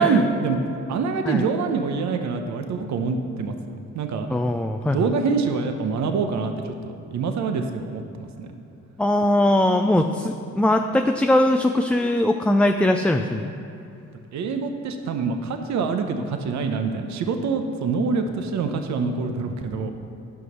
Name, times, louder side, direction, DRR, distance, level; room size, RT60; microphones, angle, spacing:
voice 1, 0.0-4.3 4.8-8.5 14.3-19.9, right 4 dB, 65° right, 6 dB, 0.9 m, -25 dB
voice 2, 4.3-5.1 9.0-13.5, left 1 dB, 5° left, 5 dB, 0.4 m, -21 dB
11.5 x 6.1 x 5.5 m, 2.8 s
cardioid pair, 90°, 30 cm